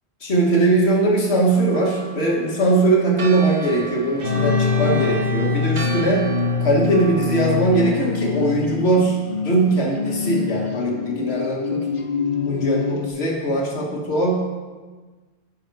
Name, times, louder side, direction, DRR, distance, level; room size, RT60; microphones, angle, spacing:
voice 1, 0.2-6.3 6.6-9.2 9.4-11.9 12.5-14.4, right 2 dB, 90° left, -2 dB, 1.8 m, -20 dB
Church bell, 1.5-8.2, right 4 dB, 35° right, 0.6 m, -36 dB
sound 1, 4.2-13.1, left 5 dB, 60° left, 1.0 m, -24 dB
Bowed string instrument, 4.2-8.0, right 2 dB, 65° right, 1.0 m, -34 dB
11.0 x 5.7 x 4.7 m, 1.3 s
omnidirectional pair, 1.0 m